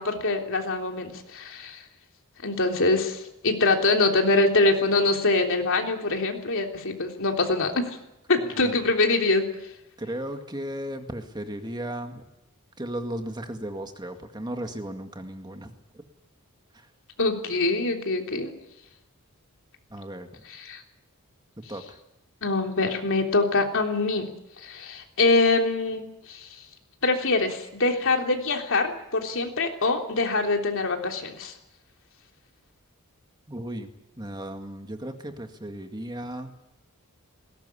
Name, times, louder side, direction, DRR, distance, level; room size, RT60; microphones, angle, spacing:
voice 1, 0.0-1.8 2.4-7.9 8.3-9.4 17.2-18.5 20.6-20.8 22.4-24.3 24.6-26.0 26.3-26.5 27.0-31.5, left 3 dB, 65° left, 3 dB, 3.4 m, -24 dB
voice 2, 8.4-8.8 10.0-12.3 12.8-15.7 16.7-16.9 19.9-20.3 21.7-22.0 33.5-36.5, right 1 dB, 20° right, 5 dB, 2.0 m, -35 dB
21.0 x 18.5 x 9.9 m, 0.87 s
head